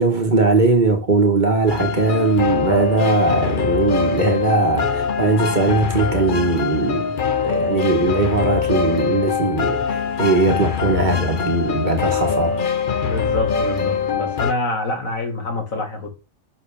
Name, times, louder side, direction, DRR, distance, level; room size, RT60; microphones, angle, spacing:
voice 1, 0.0-12.6, right 3 dB, 35° right, 1.5 m, -19 dB
sound 1, 1.7-14.5, left 6 dB, 45° left, 0.9 m, -23 dB
voice 2, 13.0-16.1, left 2 dB, 85° left, 2.6 m, -26 dB
10.0 x 6.5 x 3.6 m
omnidirectional pair, 1.4 m